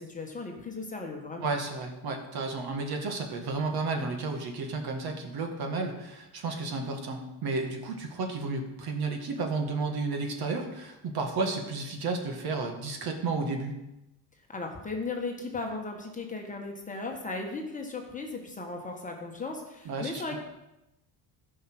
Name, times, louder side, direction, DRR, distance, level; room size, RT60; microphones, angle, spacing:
voice 1, 0.0-1.5 14.5-20.5, left 3 dB, 15° left, 1 dB, 1.5 m, -36 dB
voice 2, 1.4-13.7 19.9-20.2, right 3 dB, 50° right, 4 dB, 1.8 m, -32 dB
13.5 x 5.8 x 6.1 m, 0.92 s
cardioid pair, 150°, 46 cm